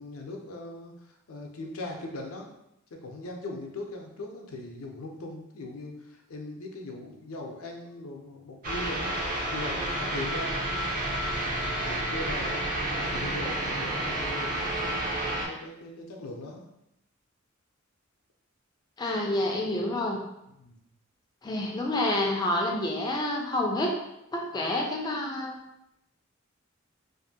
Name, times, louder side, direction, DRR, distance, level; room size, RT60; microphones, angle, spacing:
voice 1, 0.0-2.5 2.9-9.2 9.5-11.0 11.7-16.7 20.6-20.8, left 2 dB, 90° left, 1 dB, 0.5 m, -40 dB
sound 1, 8.6-15.5, right 1 dB, 40° right, 0.5 m, -30 dB
voice 2, 19.0-20.2 21.4-23.9 24.3-25.6, left 1 dB, 20° left, 0 dB, 0.3 m, -28 dB
2.6 x 2.4 x 2.6 m, 0.82 s
head